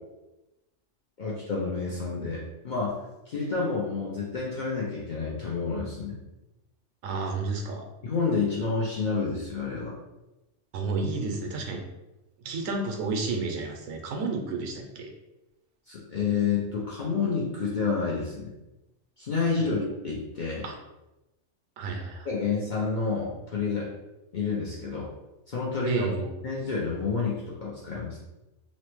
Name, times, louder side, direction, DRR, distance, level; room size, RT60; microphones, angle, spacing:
voice 1, 1.2-6.2 8.0-9.9 15.9-18.5 19.2-20.7 22.2-23.9 24.3-25.1 25.5-26.1 26.4-28.2, left 4 dB, 60° left, -6 dB, 0.5 m, -29 dB
voice 2, 7.0-7.9 10.7-11.8 12.4-15.1 19.6-19.7 20.6-20.7 21.8-22.3 25.9-26.3, right 3 dB, 90° right, 2 dB, 1.0 m, -31 dB
2.9 x 2.0 x 3.0 m, 0.98 s
omnidirectional pair, 1.3 m